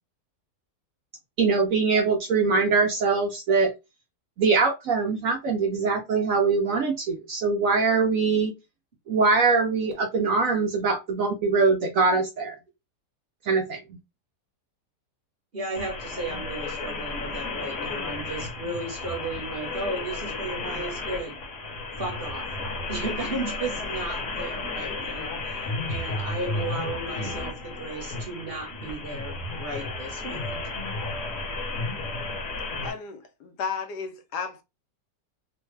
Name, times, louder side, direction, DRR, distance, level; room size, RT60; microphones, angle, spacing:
voice 1, 1.4-3.7 4.4-8.5 9.1-12.6 13.4-14.0, right 4 dB, 65° right, 0.8 m, -23 dB
voice 2, 15.5-21.4 22.0-22.5 22.9-30.6, right 2 dB, 40° right, 1.0 m, -34 dB
sound 1, 15.8-32.9, left 3 dB, 50° left, 1.1 m, -33 dB
voice 3, 32.8-34.6, left 6 dB, 75° left, 1.2 m, -33 dB
3.2 x 2.1 x 3.1 m
omnidirectional pair, 1.8 m